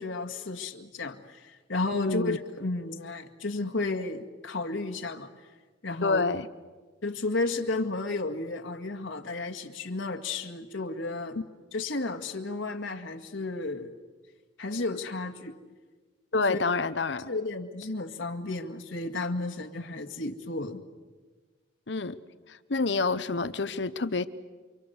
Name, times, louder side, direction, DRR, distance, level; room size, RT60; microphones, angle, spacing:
voice 1, 0.0-5.3 5.8-6.2 7.0-11.4 11.7-13.9 14.6-15.6 16.5-16.6 17.3-20.8, left 3 dB, 90° left, 3 dB, 2.0 m, -33 dB
voice 2, 1.9-2.4 6.0-6.5 16.3-17.3 21.9-22.2 22.5-24.3, left 3 dB, 65° left, 13 dB, 0.9 m, -28 dB
29.0 x 25.0 x 8.1 m, 1.3 s
head